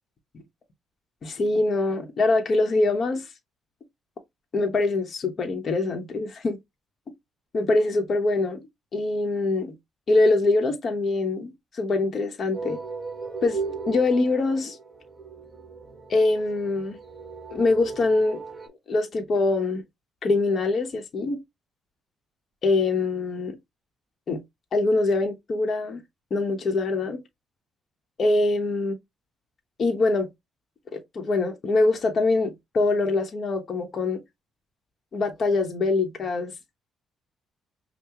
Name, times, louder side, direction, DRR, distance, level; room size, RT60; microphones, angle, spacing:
voice 1, 1.2-3.3 4.5-6.6 7.5-8.7 8.9-9.7 10.1-12.8 13.4-13.6 13.9-14.8 16.1-17.0 17.5-18.4 18.9-19.8 20.2-21.4 22.6-23.5 24.3-24.4 24.7-26.0 26.3-27.2 28.2-29.0 29.8-30.3 30.9-34.2 35.1-36.5, left 3 dB, 50° left, 1.0 m, -24 dB
sound 1, 12.5-18.7, right 4 dB, 15° right, 1.6 m, -36 dB
5.6 x 2.2 x 2.9 m
cardioid pair, 90°, 0 cm